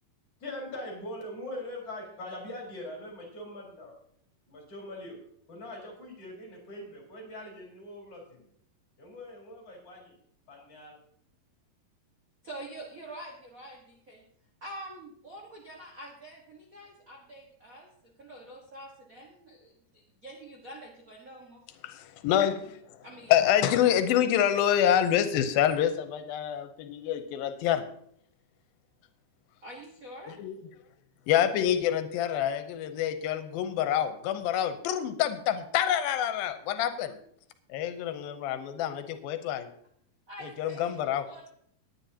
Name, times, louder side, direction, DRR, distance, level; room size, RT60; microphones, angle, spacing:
voice 1, 0.4-3.9 4.5-5.2 5.5-8.5 9.0-10.1 10.5-11.0, left 1 dB, 40° left, -1 dB, 5.1 m, -42 dB
voice 2, 12.4-14.2 14.6-21.6 23.0-23.4 29.6-30.4 40.3-41.5, right 1 dB, 70° right, -1 dB, 0.8 m, -46 dB
voice 3, 21.8-22.8 23.3-27.8 30.4-30.5 31.3-37.2 37.7-39.7 40.6-41.2, left 10 dB, 90° left, 9 dB, 2.6 m, -27 dB
19.0 x 9.7 x 2.8 m, 0.67 s
omnidirectional pair, 4.1 m